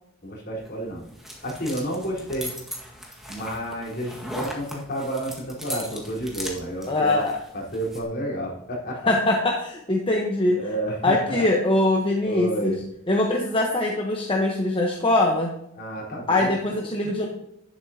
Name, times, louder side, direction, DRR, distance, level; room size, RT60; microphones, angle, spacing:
voice 1, 0.2-1.0 1.4-2.5 3.3-7.3 7.5-9.1 10.5-11.5 12.2-12.8 15.8-16.7, right 1 dB, 45° left, -4 dB, 4.2 m, -30 dB
sound 1, 0.6-8.0, equal, ahead, 1.7 m, -38 dB
voice 2, 6.9-7.4 9.1-10.6 11.0-12.7 13.1-15.5 16.3-17.3, left 2 dB, 25° left, 0 dB, 1.1 m, -22 dB
11.5 x 10.5 x 2.9 m, 0.79 s
head